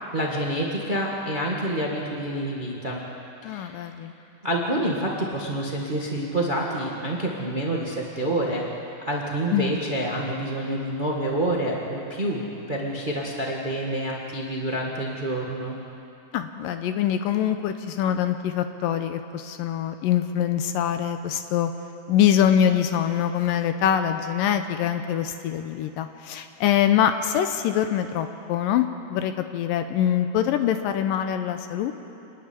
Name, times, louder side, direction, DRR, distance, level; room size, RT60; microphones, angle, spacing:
voice 1, 0.1-3.0 3.5-3.8 4.4-8.6 9.0-15.7, right 1 dB, 75° right, -2 dB, 0.4 m, -27 dB
voice 2, 3.4-4.1 9.5-9.7 16.3-21.7 22.1-31.9, left 10 dB, 75° left, 8 dB, 2.3 m, -24 dB
27.0 x 10.0 x 9.7 m, 2.7 s
omnidirectional pair, 4.2 m